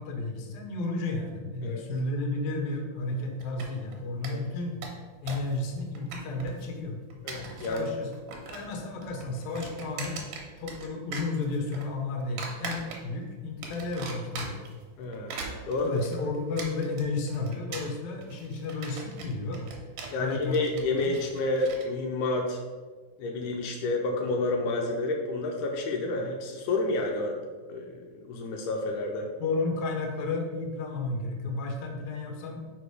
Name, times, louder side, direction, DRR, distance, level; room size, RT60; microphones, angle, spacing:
voice 1, 0.0-4.8 5.2-7.0 7.3-8.1 8.5-10.2 10.6-14.6 15.8-19.7 20.2-20.6 21.0-21.2 29.4-32.7, left 3 dB, 70° left, 2 dB, 2.1 m, -32 dB
sound 1, 3.4-3.9 4.2-4.3 4.6-5.5 5.8-6.6 7.1-7.9 8.1-8.8 9.0-10.9 11.1-11.8 12.4-13.2 13.6-14.7 15.1-21.8, right 4 dB, 80° right, 2.4 m, -40 dB
voice 2, 7.2-7.9 15.0-15.9 20.1-22.6 23.2-27.4 27.7-29.3, left 2 dB, 85° left, 1 dB, 2.2 m, -30 dB
5.1 x 5.0 x 4.7 m, 1.4 s
omnidirectional pair, 3.5 m